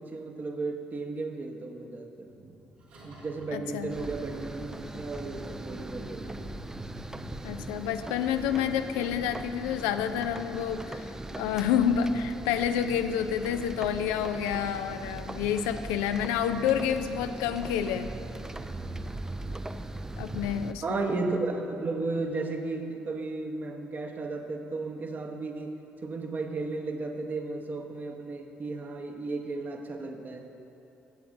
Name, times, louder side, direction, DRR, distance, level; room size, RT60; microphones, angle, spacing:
voice 1, 0.0-2.6 3.0-6.4 20.8-30.5, right 3 dB, 40° right, 4 dB, 0.9 m, -34 dB
sound 1, 2.2-7.5, equal, 75° right, 1.9 m, -47 dB
voice 2, 3.5-3.9 7.4-18.1 20.2-21.1, left 8 dB, 70° left, 9 dB, 0.4 m, -29 dB
sound 2, 3.9-20.7, right 2 dB, 10° right, 0.4 m, -40 dB
15.0 x 7.8 x 2.6 m, 3.0 s
hypercardioid pair, 50°, 5 cm